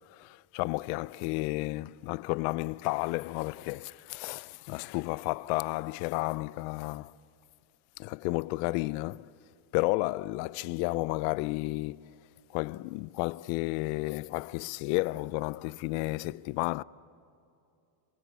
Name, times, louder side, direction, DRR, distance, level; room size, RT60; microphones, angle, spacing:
voice 1, 0.0-7.2 8.0-9.3 9.7-12.2 12.5-16.8, left 22 dB, 90° left, 0.6 m, -32 dB
27.0 x 26.5 x 8.2 m
supercardioid pair, 100°, 49 cm